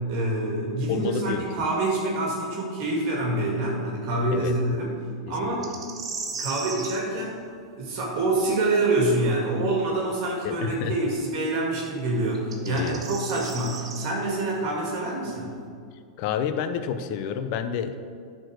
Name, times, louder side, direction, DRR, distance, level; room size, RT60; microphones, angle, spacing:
voice 1, 0.1-4.9 5.3-5.6 6.4-7.4 7.7-15.5, right 2 dB, 55° right, -2 dB, 2.3 m, -26 dB
voice 2, 0.9-1.4 4.3-4.6 5.3-5.6 10.4-10.9 12.7-13.0 16.2-18.0, left 8 dB, 55° left, 9 dB, 0.7 m, -29 dB
sound 1, 5.6-7.0 10.1-10.2 12.3-14.1, right 5 dB, 85° right, 1.5 m, -35 dB
10.5 x 4.4 x 6.4 m, 2.2 s
hypercardioid pair, 110°, 3 cm